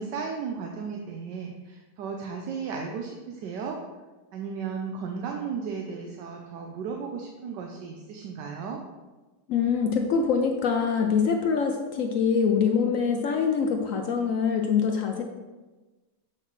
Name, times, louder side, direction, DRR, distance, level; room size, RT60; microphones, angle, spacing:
voice 1, 0.0-3.8 4.3-8.8, right 5 dB, 85° right, 2 dB, 1.3 m, -35 dB
voice 2, 9.5-15.2, left 6 dB, 70° left, 3 dB, 0.8 m, -24 dB
7.7 x 5.8 x 3.1 m, 1.2 s
omnidirectional pair, 1.9 m